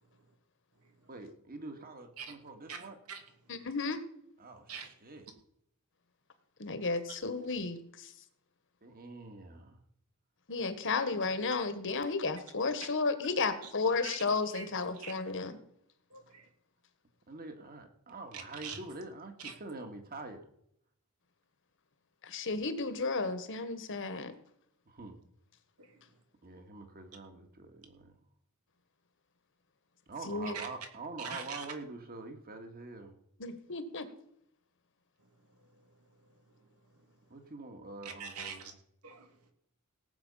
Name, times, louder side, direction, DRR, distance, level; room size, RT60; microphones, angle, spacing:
voice 1, 1.1-3.0 4.4-5.3 8.8-9.8 17.3-20.4 24.9-25.2 26.4-28.1 30.1-33.2 37.3-38.7, right 3 dB, 45° right, 6 dB, 2.0 m, -45 dB
voice 2, 2.7-3.2 4.7-4.9 7.1-7.2 13.6-13.7 14.0-14.2 14.5-14.6 14.9-15.2 16.1-16.5 18.3-18.8 19.4-19.5 25.8-26.0 30.5-30.7 31.2-31.7 35.5-35.9 36.3-36.4 38.0-38.7 39.0-39.5, right 6 dB, 90° right, 5 dB, 2.7 m, -44 dB
voice 3, 3.5-4.0 6.6-8.1 10.5-15.6 22.2-24.3 30.2-30.6 33.4-34.1, left 4 dB, 60° left, 10 dB, 1.5 m, -33 dB
18.0 x 8.2 x 5.6 m, 0.73 s
head